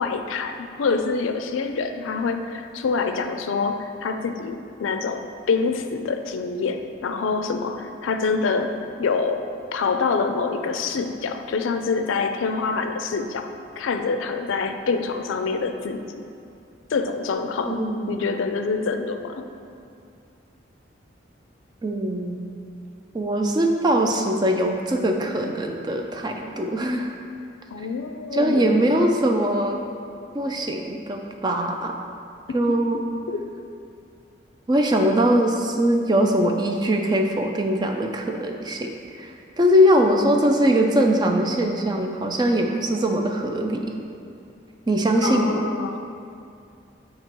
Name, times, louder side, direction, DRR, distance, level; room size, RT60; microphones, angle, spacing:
voice 1, 0.0-8.7 9.0-13.5 13.8-16.2 16.9-19.5 27.7-29.0 33.3-33.4 45.2-46.0, left 4 dB, 90° left, 7 dB, 0.4 m, -26 dB
voice 2, 17.7-18.4 21.8-22.4 23.1-27.1 28.3-29.8 30.3-32.0 32.5-33.1 34.7-43.9 44.9-45.7, equal, 20° right, 3 dB, 0.3 m, -22 dB
7.4 x 2.8 x 4.5 m, 2.5 s
head